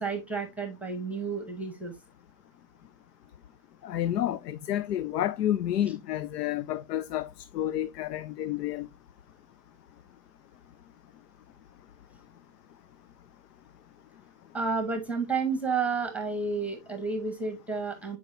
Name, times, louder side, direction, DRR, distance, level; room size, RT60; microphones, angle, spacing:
voice 1, 0.0-1.9 14.5-18.2, right 4 dB, 5° right, 0.8 m, -31 dB
voice 2, 3.8-8.9, left 12 dB, 90° left, 0.6 m, -30 dB
8.6 x 4.7 x 2.6 m
hypercardioid pair, 145°, 46 cm